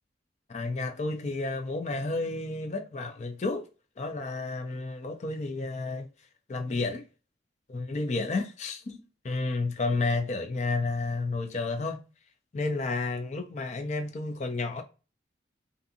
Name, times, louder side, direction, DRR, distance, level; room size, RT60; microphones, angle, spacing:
voice 1, 0.5-3.7 4.0-6.1 6.5-7.0 7.7-8.8 9.2-12.0 12.5-14.8, left 3 dB, 40° left, 0.4 m, -31 dB
2.5 x 2.4 x 2.6 m
head